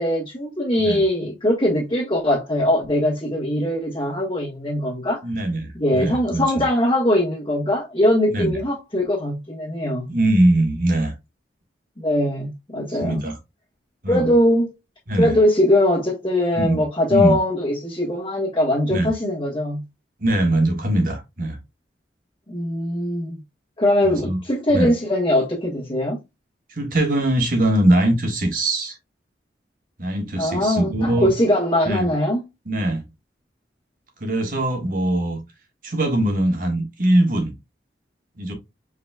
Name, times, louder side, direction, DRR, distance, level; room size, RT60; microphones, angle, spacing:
voice 1, 0.0-5.2 5.7-10.1 12.0-13.2 14.1-14.7 15.2-19.8 22.5-23.4 23.8-26.2 30.4-32.4, left 1 dB, 25° left, 1.7 m, -21 dB
voice 2, 5.2-6.6 8.3-8.6 10.1-11.1 12.9-13.4 14.0-14.3 15.1-15.3 16.6-16.8 17.1-17.4 18.9-19.1 20.2-21.6 24.0-24.4 24.7-24.9 26.7-29.0 30.0-31.3 31.8-32.1 32.6-33.0 34.2-35.4 35.8-37.5 38.4-38.5, right 1 dB, 50° right, 1.5 m, -21 dB
5.0 x 4.2 x 2.3 m
head